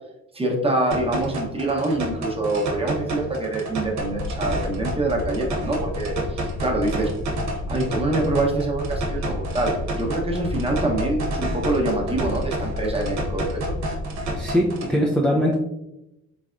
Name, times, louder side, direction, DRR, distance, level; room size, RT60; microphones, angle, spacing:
voice 1, 0.3-7.1 7.7-13.7, right 2 dB, 20° right, -1 dB, 0.9 m, -25 dB
sound 1, 0.9-14.9, right 1 dB, 65° right, 1.0 m, -31 dB
sound 2, 4.0-14.5, left 2 dB, 55° left, 0.5 m, -32 dB
voice 2, 14.3-15.6, equal, 5° left, -3 dB, 0.5 m, -21 dB
3.4 x 3.3 x 2.5 m, 0.88 s
cardioid pair, 90°, 30 cm